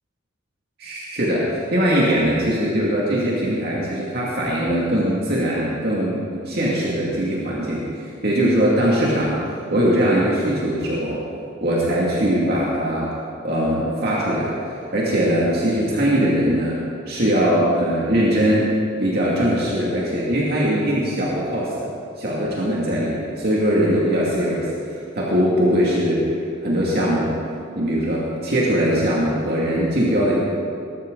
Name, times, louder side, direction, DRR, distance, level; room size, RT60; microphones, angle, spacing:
voice 1, 0.8-9.4 9.7-11.2 11.6-13.1 13.4-18.7 19.0-21.9 22.2-26.2 26.6-27.4 27.8-30.3, equal, 50° right, -6 dB, 2.3 m, -21 dB
20.0 x 13.5 x 3.9 m, 2.5 s
head